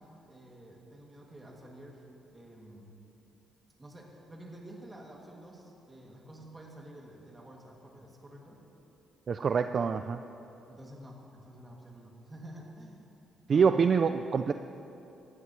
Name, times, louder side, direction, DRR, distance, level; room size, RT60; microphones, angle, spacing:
voice 1, 0.0-2.0 2.3-2.9 3.8-8.6 10.7-13.0 13.5-13.7, right 1 dB, 20° right, -1 dB, 2.5 m, -50 dB
voice 2, 9.3-10.2 13.5-14.5, right 6 dB, 50° right, 9 dB, 0.4 m, -25 dB
18.5 x 13.5 x 3.2 m, 2.8 s
cardioid pair, 90°, 0 cm